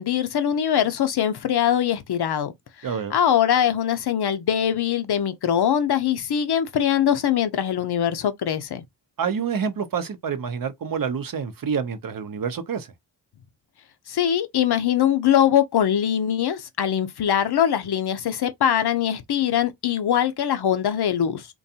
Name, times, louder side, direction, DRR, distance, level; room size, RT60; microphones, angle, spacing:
voice 1, 0.0-2.5 3.1-8.8 14.1-21.5, left 9 dB, 60° left, 0.6 m, -22 dB
voice 2, 2.8-3.2 9.2-12.9, right 6 dB, 50° right, 0.6 m, -27 dB
2.5 x 2.3 x 2.7 m
cardioid pair, 60°, 43 cm